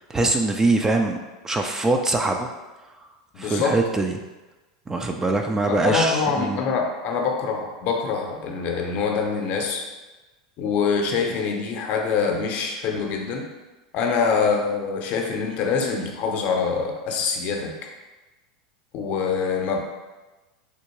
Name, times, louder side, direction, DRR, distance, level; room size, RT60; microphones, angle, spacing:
voice 1, 0.1-1.2 1.4-2.5 3.4-4.2 4.9-6.6, right 2 dB, 15° right, 3 dB, 0.3 m, -23 dB
voice 2, 3.3-3.8 5.7-9.8 10.6-13.4 13.9-17.7 18.9-19.8, left 5 dB, 50° left, 2 dB, 0.6 m, -24 dB
3.4 x 2.7 x 3.0 m, 1.1 s
hypercardioid pair, 100°, 3 cm